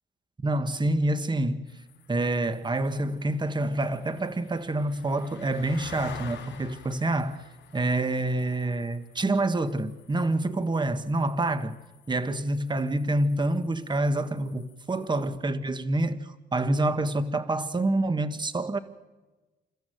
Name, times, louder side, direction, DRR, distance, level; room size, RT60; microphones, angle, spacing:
voice 1, 0.4-1.7 2.1-7.4 7.7-11.8 12.1-18.8, right 2 dB, 20° right, 1.6 m, -27 dB
sound 1, 1.7-15.4, left 7 dB, 65° left, 5.0 m, -50 dB
29.5 x 14.0 x 7.8 m
cardioid pair, 90°, 20 cm